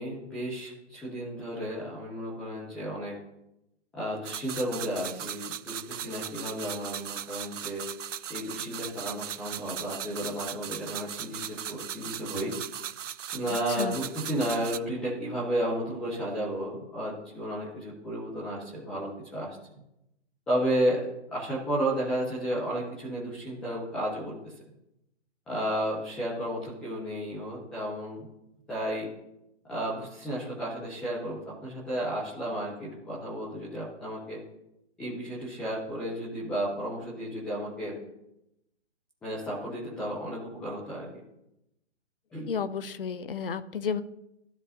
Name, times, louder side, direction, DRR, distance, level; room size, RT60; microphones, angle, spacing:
voice 1, 0.0-3.2 3.9-7.8 8.3-12.6 13.3-19.6 20.5-24.5 25.5-28.3 28.7-29.1 29.7-34.4 35.0-38.0 39.2-41.1 42.3-42.5, right 1 dB, 5° left, -7 dB, 0.5 m, -33 dB
sound 1, 4.2-14.8, right 9 dB, 85° right, 0.5 m, -38 dB
voice 2, 42.5-44.0, left 6 dB, 50° left, 13 dB, 0.7 m, -32 dB
15.0 x 5.3 x 2.7 m, 0.87 s
figure-of-eight pair, 145°, 36 cm